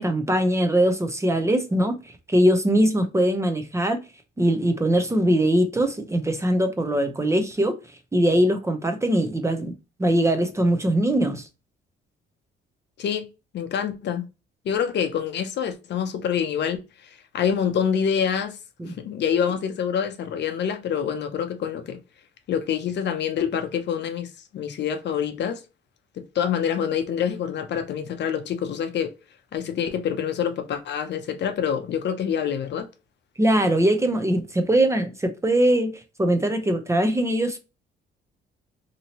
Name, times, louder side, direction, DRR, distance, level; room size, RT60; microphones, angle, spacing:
voice 1, 0.0-2.0 2.3-4.0 4.4-7.7 8.1-9.7 10.0-11.5 18.8-19.0 33.4-37.6, right 1 dB, 15° right, 0.6 m, -21 dB
voice 2, 13.5-14.2 14.7-18.6 19.0-22.0 22.5-25.6 26.3-29.1 29.5-32.9, left 8 dB, 60° left, 0.6 m, -26 dB
2.8 x 2.8 x 2.8 m
cardioid pair, 90°, 20 cm